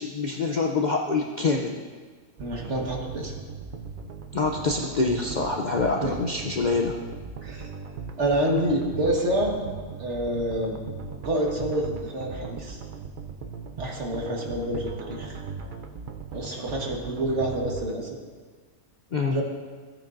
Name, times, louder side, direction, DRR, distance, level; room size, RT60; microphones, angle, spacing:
voice 1, 0.0-1.8 4.3-7.0 19.1-19.4, left 3 dB, 90° left, 1 dB, 0.4 m, -25 dB
voice 2, 2.4-3.3 6.0-6.1 7.4-7.7 8.2-9.6 10.0-10.8 11.2-12.8 13.8-15.4 16.3-18.2 19.3-19.4, right 1 dB, 50° right, -1 dB, 1.7 m, -27 dB
sound 1, 2.4-17.9, right 5 dB, 80° right, 0.4 m, -38 dB
15.5 x 9.0 x 2.6 m, 1.5 s
omnidirectional pair, 1.6 m